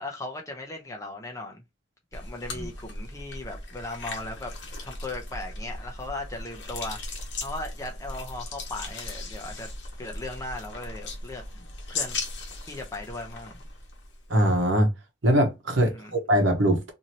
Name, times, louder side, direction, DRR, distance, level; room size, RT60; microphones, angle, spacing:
voice 1, 0.0-1.6 2.1-4.5 4.8-7.0 7.4-9.7 10.0-11.4 11.9-12.2 12.7-13.7 15.8-16.1, left 2 dB, 15° left, 0.6 m, -37 dB
sound 1, 2.1-14.3, left 3 dB, 65° left, 0.9 m, -38 dB
voice 2, 14.3-14.9 15.2-16.9, equal, 75° right, 0.9 m, -22 dB
2.8 x 2.7 x 2.9 m
head